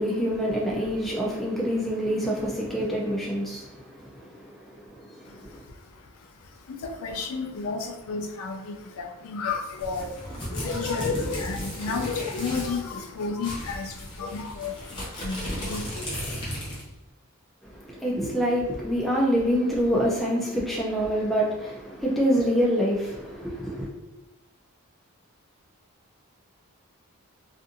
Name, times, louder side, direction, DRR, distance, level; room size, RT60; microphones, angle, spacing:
voice 1, 0.0-5.6 17.7-23.9, equal, ahead, 0.4 m, -26 dB
voice 2, 5.3-16.8, left 4 dB, 70° left, 0.4 m, -33 dB
sound 1, 9.8-12.8 13.1-13.2 13.4-16.9, equal, 20° left, 0.7 m, -35 dB
2.5 x 2.5 x 2.5 m
head